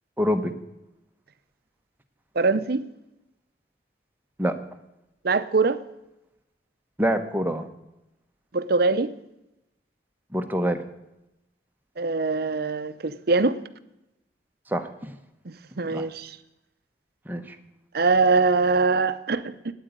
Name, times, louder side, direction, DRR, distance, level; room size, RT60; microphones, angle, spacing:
voice 1, 0.2-0.5 4.4-4.6 7.0-7.7 10.3-10.8 14.7-15.1 15.9-16.1 17.3-17.6, equal, 10° right, 6 dB, 1.0 m, -25 dB
voice 2, 2.4-2.8 5.2-5.8 8.5-9.1 12.0-13.6 15.4-16.4 17.9-19.5, right 3 dB, 55° right, 13 dB, 0.7 m, -23 dB
9.2 x 9.1 x 9.0 m, 0.89 s
head